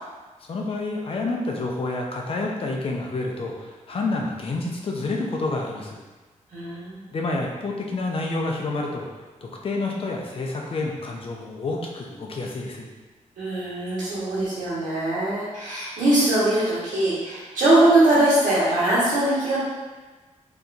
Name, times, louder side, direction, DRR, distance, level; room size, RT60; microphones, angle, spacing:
voice 1, 0.5-6.0 7.1-9.1 9.4-12.9, left 2 dB, 45° left, -1 dB, 0.6 m, -28 dB
voice 2, 6.5-7.0 13.4-19.6, right 1 dB, 85° right, -10 dB, 1.4 m, -21 dB
3.7 x 2.8 x 2.6 m, 1.3 s
wide cardioid pair, 130°, 13 cm